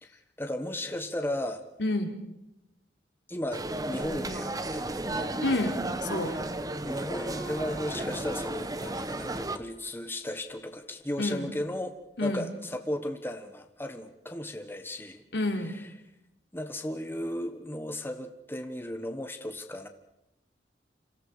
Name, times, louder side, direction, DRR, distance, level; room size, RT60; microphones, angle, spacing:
voice 1, 0.0-1.6 3.3-5.3 6.2-6.4 6.7-15.2 16.5-19.9, left 1 dB, 15° left, 7 dB, 1.3 m, -35 dB
voice 2, 1.8-2.2 5.4-6.4 11.2-11.5 12.2-12.5 15.3-15.7, left 2 dB, 75° left, 5 dB, 3.5 m, -29 dB
sound 1, 3.5-9.6, right 2 dB, 20° right, 1.2 m, -34 dB
Gong, 7.1-10.0, right 1 dB, 5° right, 6.9 m, -48 dB
30.0 x 26.5 x 5.0 m, 0.87 s
head